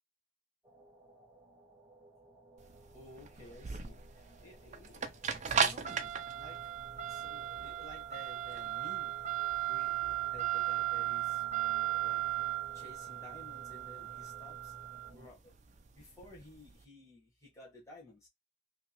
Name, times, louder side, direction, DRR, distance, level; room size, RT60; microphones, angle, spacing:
sound 1, 0.6-15.3, right 1 dB, 15° right, 0.8 m, -57 dB
sound 2, 2.6-16.7, right 10 dB, 35° right, 0.5 m, -36 dB
voice 1, 2.9-9.2 9.7-11.4 12.0-12.2 12.7-14.7 15.1-15.5 15.9-18.3, left 1 dB, 15° left, 1.3 m, -55 dB
3.1 x 2.9 x 3.0 m
head